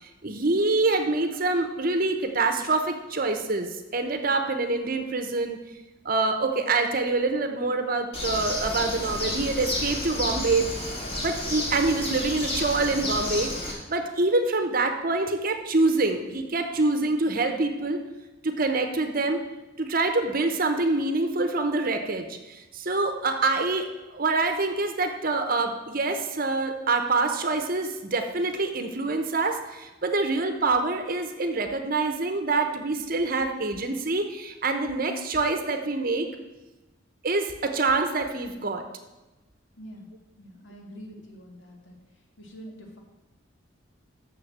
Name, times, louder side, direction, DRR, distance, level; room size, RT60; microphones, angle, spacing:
voice 1, 0.0-5.6 6.0-18.0 18.4-19.4 19.8-23.9 24.1-36.3 37.2-38.8, right 3 dB, 45° right, 6 dB, 0.8 m, -26 dB
Bird, 8.1-13.7, left 1 dB, 30° left, 2.1 m, -31 dB
voice 2, 39.7-40.1 40.4-42.0 42.4-43.0, equal, 65° left, 1 dB, 1.9 m, -45 dB
6.7 x 6.4 x 7.3 m, 1.1 s
head